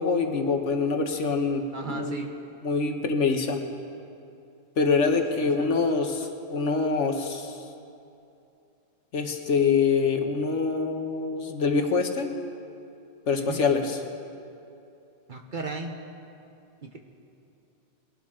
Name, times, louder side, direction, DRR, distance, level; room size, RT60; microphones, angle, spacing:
voice 1, 0.0-2.3 2.6-3.6 4.8-7.6 9.1-12.3 13.3-14.0, left 4 dB, 70° left, 5 dB, 1.4 m, -25 dB
voice 2, 1.7-2.3 5.1-5.8 13.4-13.6 15.3-15.9 16.8-17.0, right 3 dB, 45° right, 3 dB, 1.0 m, -36 dB
22.0 x 12.0 x 3.7 m, 2.7 s
omnidirectional pair, 1.3 m